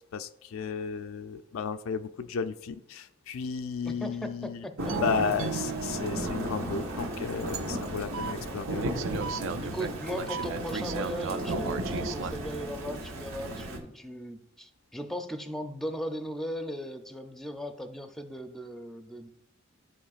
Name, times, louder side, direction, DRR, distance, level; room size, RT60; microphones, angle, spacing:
voice 1, 0.1-4.7 5.0-9.1 9.3-9.8 10.2-10.3, left 6 dB, 85° left, 9 dB, 0.4 m, -34 dB
voice 2, 3.8-4.3 4.6-4.9 9.6-19.3, equal, ahead, 6 dB, 0.5 m, -38 dB
Thunder / Rain, 4.8-13.8, right 1 dB, 90° right, 1.1 m, -34 dB
sound 1, 4.9-6.8 8.1-8.3 8.8-12.3, right 6 dB, 70° right, 0.4 m, -36 dB
13.5 x 4.5 x 2.4 m, 0.83 s
head